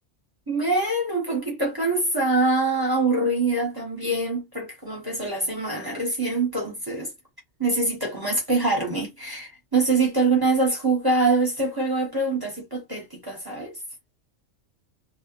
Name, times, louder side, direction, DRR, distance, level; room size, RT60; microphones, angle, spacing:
voice 1, 0.5-7.1 7.6-13.7, right 3 dB, 20° right, 1.0 m, -24 dB
2.7 x 2.3 x 2.4 m
omnidirectional pair, 1.3 m